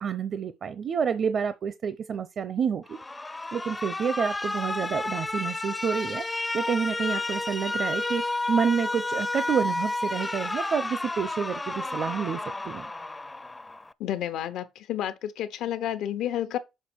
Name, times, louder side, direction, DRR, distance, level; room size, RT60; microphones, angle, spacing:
voice 1, 0.0-3.0 3.5-12.9, right 7 dB, 55° right, 0.7 m, -29 dB
Alarm, 2.9-13.9, left 2 dB, 20° left, 0.5 m, -31 dB
voice 2, 14.0-16.6, left 11 dB, 85° left, 1.0 m, -30 dB
6.6 x 4.8 x 6.2 m
cardioid pair, 90°, 0 cm